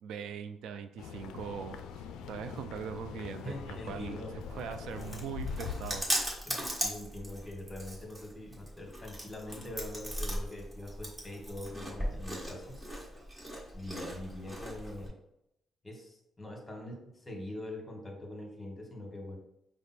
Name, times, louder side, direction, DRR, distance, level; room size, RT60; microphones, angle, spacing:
voice 1, 0.0-4.2 4.5-6.1, right 7 dB, 80° right, 8 dB, 0.3 m, -41 dB
sound 1, 1.0-6.0, left 6 dB, 90° left, 0.3 m, -42 dB
voice 2, 3.4-4.3 6.4-12.7 13.7-15.2 15.8-19.4, left 1 dB, 15° left, 0 dB, 1.4 m, -43 dB
Chewing mastication, 4.4-15.1, equal, 15° right, 1.4 m, -38 dB
5.0 x 2.0 x 4.3 m, 0.82 s
cardioid pair, 90°, 0 cm